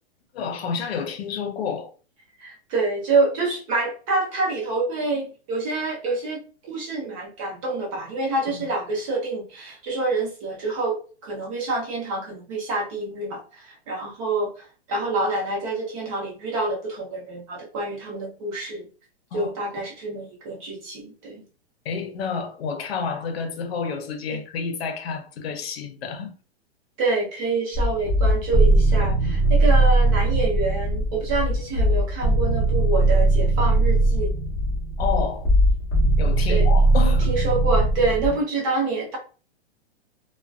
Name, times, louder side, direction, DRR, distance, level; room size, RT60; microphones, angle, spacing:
voice 1, 0.3-1.9 8.5-8.7 19.3-19.5 21.8-26.3 28.9-29.3 35.0-35.5 36.2-37.3 38.3-38.4, left 5 dB, 70° left, 0.7 m, -30 dB
voice 2, 2.4-18.9 19.3-21.4 24.3-24.4 27.0-34.3 36.5-36.7 37.3-39.2, right 3 dB, 30° right, 0.8 m, -27 dB
sound 1, 27.7-38.3, right 2 dB, 15° left, 0.6 m, -20 dB
2.4 x 2.2 x 2.3 m
hypercardioid pair, 165°, 32 cm